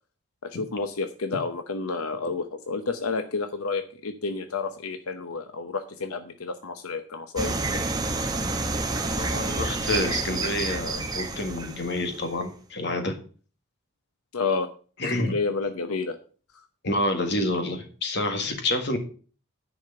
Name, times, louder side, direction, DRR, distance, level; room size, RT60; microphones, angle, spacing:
voice 1, 0.4-7.8 14.3-14.7 15.2-16.2, left 4 dB, 85° left, 8 dB, 0.8 m, -30 dB
sound 1, 7.4-12.4, right 2 dB, 20° right, 1.0 m, -29 dB
voice 2, 9.2-13.1 15.0-15.4 16.8-19.0, left 2 dB, 50° left, 6 dB, 1.7 m, -28 dB
10.0 x 5.1 x 6.8 m, 0.39 s
head